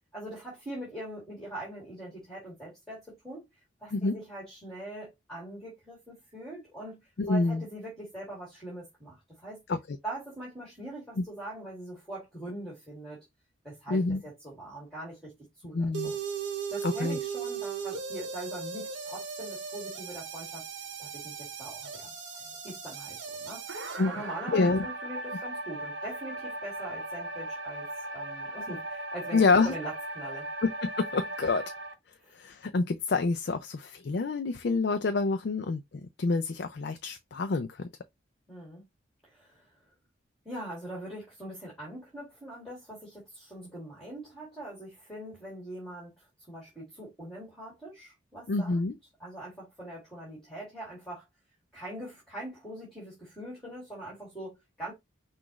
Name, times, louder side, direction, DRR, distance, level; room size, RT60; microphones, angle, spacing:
voice 1, 0.1-3.4 3.8-9.6 10.0-13.2 13.6-16.2 16.7-20.6 21.0-23.6 24.1-27.9 28.1-30.5 32.2-32.3 38.5-38.8 39.2-39.7 40.4-48.8 49.2-51.2 51.7-54.9, right 1 dB, ahead, 2.3 m, -42 dB
voice 2, 7.2-7.6 9.7-10.0 11.2-11.3 13.9-14.2 15.7-16.1 16.8-17.2 24.0-24.2 24.5-24.9 29.3-29.7 30.6-31.7 32.3-37.9 48.5-49.0, left 3 dB, 55° left, 0.4 m, -27 dB
sound 1, 15.9-31.9, right 4 dB, 65° right, 0.9 m, -37 dB
6.0 x 2.4 x 3.0 m
head